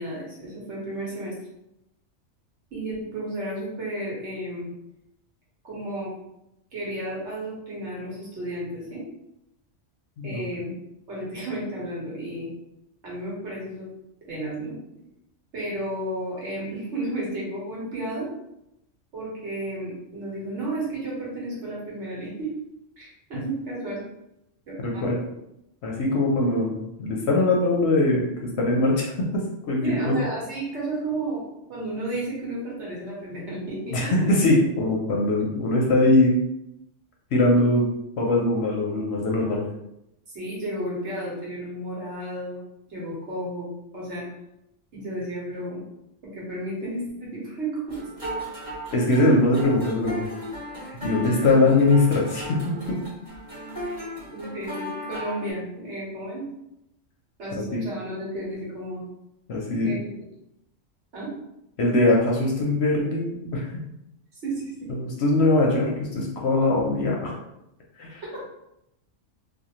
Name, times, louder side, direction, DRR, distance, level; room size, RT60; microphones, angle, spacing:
voice 1, 0.0-1.3 2.7-4.7 5.6-6.1 6.7-9.0 10.2-10.7 11.1-12.5 13.0-13.9 14.3-14.8 15.5-18.3 19.1-22.5 23.0-24.0 24.7-25.1 29.8-31.4 31.7-34.1 40.3-42.6 42.9-43.7 43.9-44.2 44.9-45.8 46.3-48.0 53.8-56.4 57.4-59.0 59.8-60.2 61.1-61.3 64.3-64.9 68.3-68.4, right 1 dB, 65° right, -6 dB, 1.3 m, -32 dB
voice 2, 24.8-25.2 25.8-29.1 29.7-30.1 33.9-36.4 37.3-37.9 38.2-39.6 48.9-50.2 50.9-52.6 57.6-57.8 59.5-59.9 61.8-63.7 64.9-67.3 68.0-68.2, left 2 dB, 65° left, -1 dB, 0.7 m, -21 dB
sound 1, 47.9-55.5, equal, 35° right, 1.2 m, -36 dB
2.5 x 2.4 x 2.9 m, 0.85 s
omnidirectional pair, 1.3 m